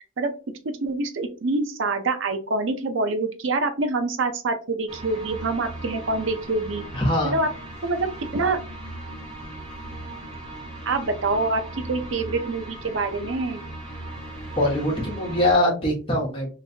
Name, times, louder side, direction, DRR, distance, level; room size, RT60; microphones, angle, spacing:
voice 1, 0.6-6.8 7.2-7.5 7.8-8.6 10.9-11.6 11.9-13.6, right 3 dB, 70° right, 7 dB, 0.5 m, -26 dB
sound 1, 4.9-15.5, right 1 dB, 25° right, 1.1 m, -38 dB
voice 2, 6.9-7.3 14.6-16.5, left 1 dB, 25° left, -2 dB, 1.2 m, -22 dB
3.1 x 3.0 x 2.7 m, 0.35 s
head